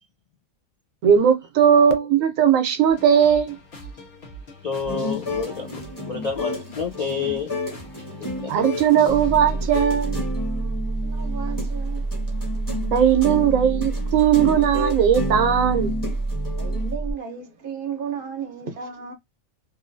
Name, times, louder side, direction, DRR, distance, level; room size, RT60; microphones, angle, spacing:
voice 1, 1.0-3.6 8.5-10.2 12.9-15.9, right 8 dB, 75° right, 1.1 m, -18 dB
sound 1, 2.9-9.9, left 1 dB, 45° left, 1.1 m, -43 dB
voice 2, 4.6-5.8 6.1-7.5 8.4-8.5, left 6 dB, 75° left, 0.3 m, -28 dB
sound 2, 4.9-16.9, left 1 dB, 15° left, 1.1 m, -32 dB
sound 3, 9.1-17.1, right 3 dB, 20° right, 0.8 m, -28 dB
voice 3, 11.0-12.7 16.6-19.1, right 7 dB, 50° right, 0.8 m, -34 dB
3.0 x 2.6 x 2.6 m
omnidirectional pair, 1.4 m